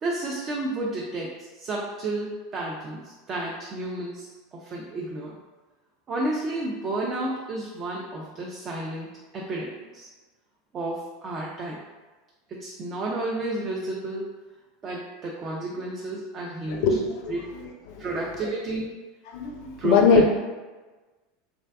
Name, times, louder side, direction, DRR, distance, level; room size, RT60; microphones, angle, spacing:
voice 1, 0.0-5.3 6.1-9.1 9.3-10.1 10.7-11.8 12.5-14.3 14.8-16.8 17.3-17.4 18.0-18.9 19.8-20.3, right 2 dB, 40° right, -3 dB, 0.4 m, -31 dB
voice 2, 16.7-18.1 19.3-20.3, left 5 dB, 60° left, 3 dB, 0.4 m, -22 dB
2.5 x 2.2 x 2.2 m, 1.3 s
hypercardioid pair, 90°, 0 cm